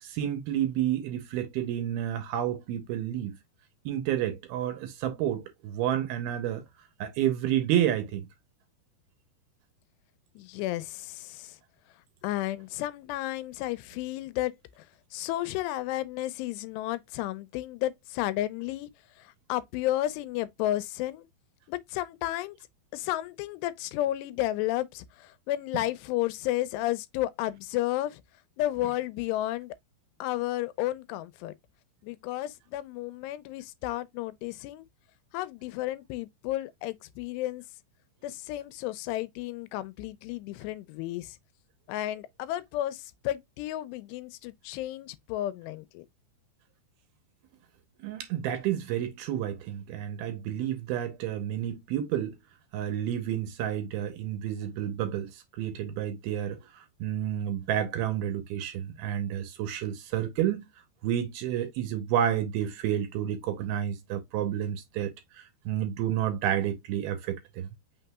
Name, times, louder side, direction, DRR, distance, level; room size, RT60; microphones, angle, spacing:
voice 1, 0.0-3.4 3.9-6.6 7.0-8.3 25.7-25.8 48.0-52.4 52.7-60.7 61.0-67.7, right 11 dB, 75° right, 2.5 m, -30 dB
voice 2, 10.4-11.6 12.2-14.8 15.1-18.9 19.2-21.3 21.7-22.6 22.9-28.2 28.6-29.7 30.2-31.5 32.0-34.9 35.3-37.6 38.2-41.4 41.9-46.1, left 15 dB, 85° left, 2.6 m, -32 dB
5.9 x 3.7 x 2.3 m
omnidirectional pair, 4.9 m